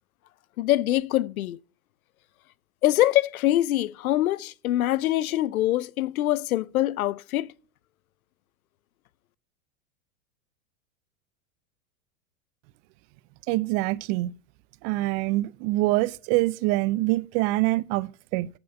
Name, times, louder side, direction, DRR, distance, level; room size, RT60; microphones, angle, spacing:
voice 1, 0.6-1.6 2.8-7.5, left 14 dB, 85° left, 0.6 m, -24 dB
voice 2, 13.5-14.3 14.8-18.5, right 19 dB, 45° right, 0.6 m, -25 dB
7.7 x 6.9 x 8.1 m
hypercardioid pair, 115°, 41 cm